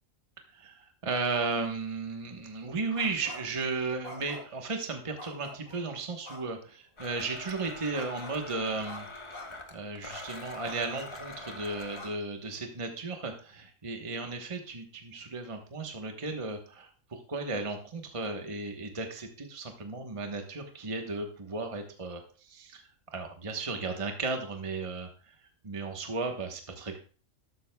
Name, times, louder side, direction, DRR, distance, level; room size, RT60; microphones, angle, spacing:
voice 1, 0.5-9.1 9.7-22.8 23.1-25.4 25.6-27.0, right 3 dB, 25° right, 4 dB, 1.2 m, -35 dB
sound 1, 2.9-3.6 4.0-4.6 5.2-5.8 6.2-6.4 7.9-8.4 8.8-9.0 9.3-9.5 10.1-10.2 10.6-10.8 11.3-11.4 11.9-12.1, left 1 dB, 80° left, 3.6 m, -45 dB
Domestic sounds home sounds, 7.0-12.0, left 2 dB, 25° left, 0.8 m, -44 dB
12.5 x 12.5 x 2.3 m, 0.38 s
omnidirectional pair, 1.4 m